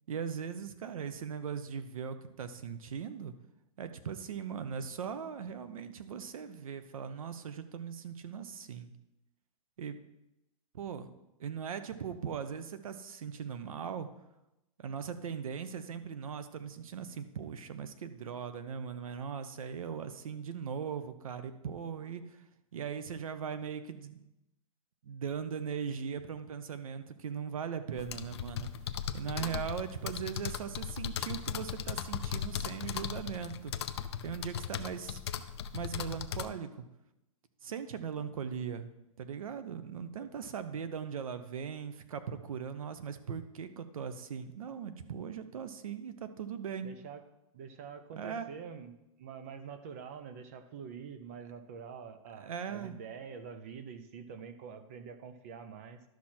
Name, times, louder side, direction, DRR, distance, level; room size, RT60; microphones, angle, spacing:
voice 1, 0.1-3.3 3.8-8.9 9.8-10.0 10.7-11.1 11.4-14.1 14.8-22.4 22.7-24.3 25.0-28.7 29.1-33.7 34.2-35.2 35.7-36.8 37.6-38.9 39.2-46.9 48.2-48.5 52.4-53.0, right 7 dB, 75° right, 11 dB, 0.9 m, -39 dB
sound 1, 28.0-36.5, left 8 dB, 50° left, 0.5 m, -37 dB
voice 2, 46.8-47.2 47.5-48.9 49.2-56.0, right 6 dB, 25° right, 10 dB, 0.5 m, -46 dB
12.0 x 6.1 x 4.4 m, 0.93 s
hypercardioid pair, 180°, 18 cm